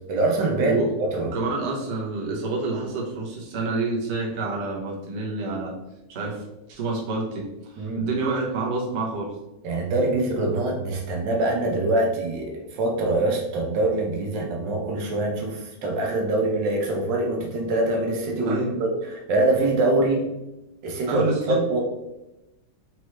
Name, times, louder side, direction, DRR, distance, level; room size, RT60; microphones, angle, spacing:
voice 1, 0.1-0.8 1.1-1.3 7.8-8.1 9.6-20.3 20.8-21.8, right 2 dB, 80° right, 0 dB, 1.5 m, -24 dB
voice 2, 1.2-5.7 6.1-6.4 6.7-9.3 18.4-18.7 21.1-21.6, right 3 dB, 45° right, -3 dB, 1.0 m, -28 dB
4.6 x 3.1 x 3.1 m, 0.94 s
omnidirectional pair, 2.0 m